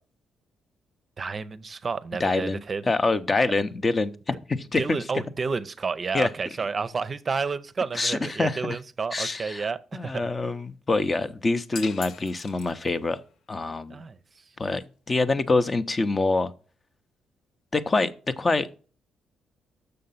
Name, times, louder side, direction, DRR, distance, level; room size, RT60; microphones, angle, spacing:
voice 1, 1.2-2.8 4.7-10.3 13.9-14.2, right 5 dB, 35° right, 0.6 m, -30 dB
voice 2, 2.2-2.6 2.9-5.0 6.1-6.3 7.9-8.8 9.1-9.7 9.9-13.2 13.5-14.0 14.6-16.5 17.7-18.7, left 3 dB, 30° left, 0.7 m, -25 dB
sound 1, 11.7-13.2, left 6 dB, 65° left, 0.7 m, -41 dB
6.7 x 6.5 x 5.6 m
cardioid pair, 90°, 0 cm